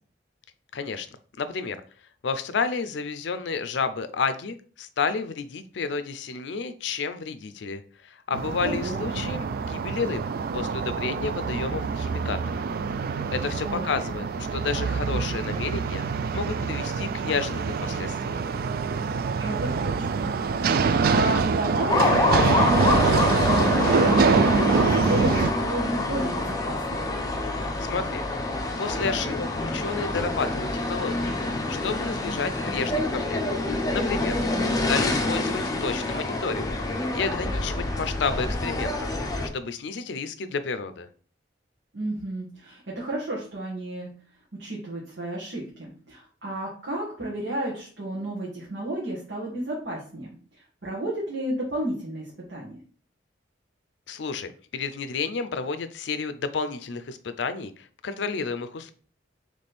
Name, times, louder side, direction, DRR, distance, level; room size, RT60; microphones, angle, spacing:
voice 1, 0.7-1.1 1.4-1.8 2.2-10.2 10.5-12.6 13.3-14.2 14.5-16.0 16.3-18.4 27.8-28.2 28.8-31.4 31.7-33.4 33.9-34.4 34.9-36.7 37.1-39.1 39.5-41.1 54.1-58.9, left 5 dB, 70° left, 11 dB, 0.5 m, -31 dB
sound 1, 8.3-25.5, right 5 dB, 55° right, 0.3 m, -25 dB
voice 2, 8.6-9.0 13.5-13.9 19.4-27.1 34.5-35.0 41.9-44.1 44.6-52.8, right 1 dB, 85° right, -5 dB, 1.3 m, -32 dB
sound 2, 21.9-39.5, left 2 dB, 20° left, 0.6 m, -26 dB
3.4 x 3.2 x 4.2 m, 0.42 s
head